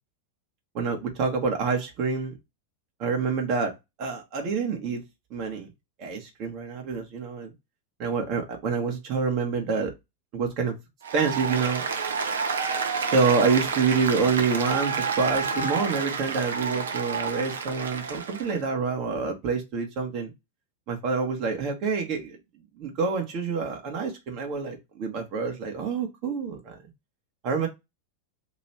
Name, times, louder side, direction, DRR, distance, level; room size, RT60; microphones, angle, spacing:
voice 1, 0.7-2.4 3.0-5.0 5.3-5.7 6.0-7.5 8.0-9.9 10.3-10.7 11.1-11.8 13.1-20.3 20.9-22.4 22.8-26.8 27.4-27.7, right 5 dB, 40° right, 1.2 m, -27 dB
Applause, 11.0-18.6, right 5 dB, 65° right, 0.7 m, -29 dB
3.0 x 3.0 x 4.3 m
figure-of-eight pair, 90°, 0 cm